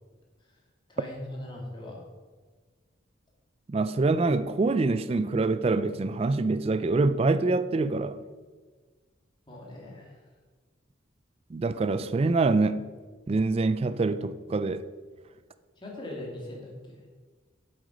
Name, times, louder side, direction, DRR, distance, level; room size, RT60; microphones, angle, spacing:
voice 1, 0.9-2.0 9.5-10.2 15.8-17.0, left 1 dB, 25° left, 2.3 m, -40 dB
voice 2, 3.7-8.2 11.5-12.8 13.3-14.8, right 3 dB, 30° right, 0.3 m, -25 dB
7.9 x 7.7 x 5.2 m
head